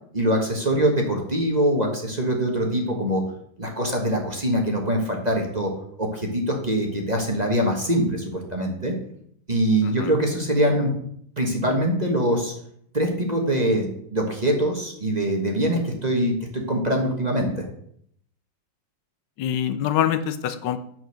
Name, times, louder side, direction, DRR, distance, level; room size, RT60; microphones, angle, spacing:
voice 1, 0.1-3.2 3.6-5.7 6.0-8.9 9.5-10.9 11.4-12.5 12.9-17.6, right 1 dB, 25° right, 1 dB, 1.2 m, -23 dB
voice 2, 19.4-20.8, left 10 dB, 75° left, 11 dB, 1.3 m, -25 dB
9.4 x 4.5 x 6.4 m, 0.67 s
omnidirectional pair, 2.0 m